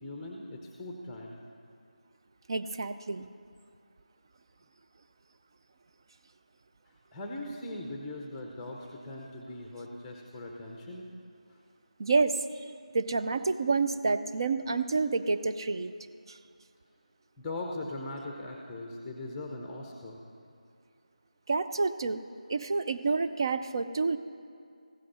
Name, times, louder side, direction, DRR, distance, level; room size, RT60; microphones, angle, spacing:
voice 1, 0.0-1.4 6.9-11.1 11.5-11.6 17.4-20.2, left 2 dB, 10° left, 1 dB, 0.7 m, -40 dB
voice 2, 2.5-3.3 12.0-12.4 12.9-15.9 16.3-16.4 21.5-22.2 22.5-24.2, right 4 dB, 35° right, 9 dB, 0.4 m, -28 dB
15.0 x 8.3 x 6.2 m, 2.3 s
figure-of-eight pair, 165°, 4 cm